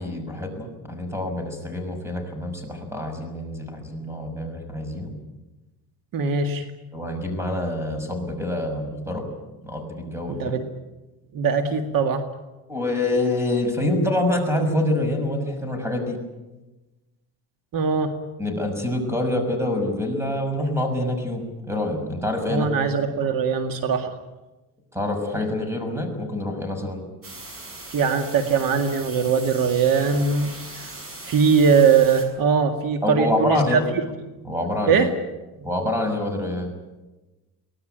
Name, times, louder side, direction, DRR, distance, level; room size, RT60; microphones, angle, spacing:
voice 1, 0.0-5.2 6.9-9.3 9.6-10.5 12.7-16.2 18.4-22.7 24.9-27.0 33.0-33.8 34.4-35.1 35.6-36.7, left 1 dB, 5° right, 6 dB, 6.2 m, -26 dB
voice 2, 6.1-6.7 10.3-10.7 11.3-12.2 17.7-18.1 22.5-24.1 27.9-30.9 31.2-34.0 34.9-35.1, right 5 dB, 60° right, 6 dB, 2.0 m, -21 dB
sound 1, 27.2-32.3, right 2 dB, 35° right, 6.9 m, -39 dB
24.0 x 18.0 x 9.2 m, 1.1 s
cardioid pair, 125°, 39 cm